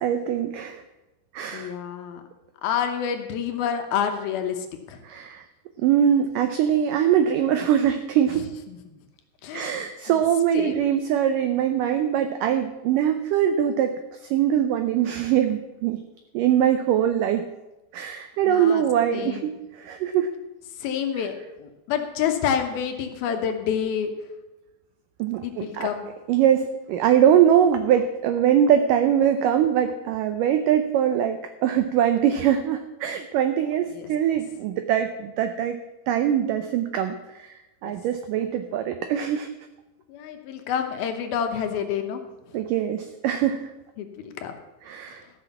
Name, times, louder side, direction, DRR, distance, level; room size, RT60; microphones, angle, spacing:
voice 1, 0.0-0.8 1.3-1.7 5.0-5.4 5.8-8.5 9.5-16.0 16.3-17.5 17.9-20.3 25.2-25.9 26.3-35.8 36.1-39.5 42.5-43.7 44.9-45.2, right 9 dB, 90° right, 8 dB, 1.8 m, -22 dB
voice 2, 1.5-2.2 2.6-5.0 8.3-8.8 9.4-10.2 10.5-10.8 18.5-18.8 19.1-19.5 20.8-24.1 25.4-26.1 33.9-34.1 37.8-38.0 40.1-42.6 44.0-44.6, left 8 dB, 75° left, 6 dB, 2.7 m, -28 dB
14.0 x 6.3 x 7.0 m, 1.0 s
omnidirectional pair, 4.6 m